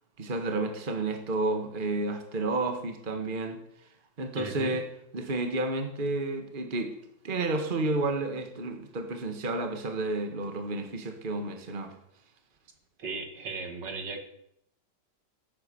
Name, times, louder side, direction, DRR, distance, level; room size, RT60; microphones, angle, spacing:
voice 1, 0.2-3.6 4.2-4.9 5.1-6.9 7.2-11.9, right 2 dB, 30° right, 6 dB, 1.7 m, -31 dB
voice 2, 4.3-4.8 13.0-14.2, right 4 dB, 75° right, 5 dB, 2.5 m, -36 dB
15.5 x 9.2 x 7.0 m, 0.74 s
omnidirectional pair, 2.0 m